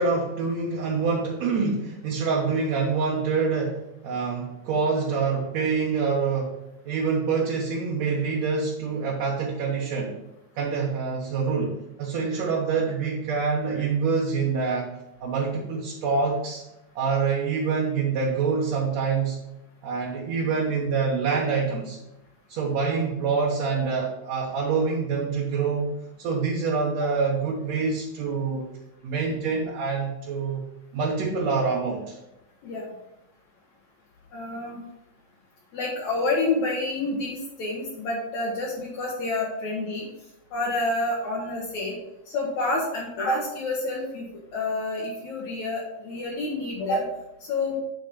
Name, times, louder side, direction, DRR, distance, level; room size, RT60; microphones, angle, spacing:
voice 1, 0.0-6.6 6.9-10.2 10.6-14.9 15.2-16.6 17.0-19.4 19.8-22.0 22.5-25.9 26.2-28.7 29.0-30.6 30.9-32.2, right 5 dB, 65° right, -3 dB, 2.2 m, -26 dB
voice 2, 34.3-34.9 35.7-40.1 40.5-42.0 42.3-47.1 47.5-47.8, left 2 dB, 65° left, -4 dB, 2.5 m, -28 dB
9.2 x 4.1 x 5.3 m, 0.91 s
omnidirectional pair, 3.7 m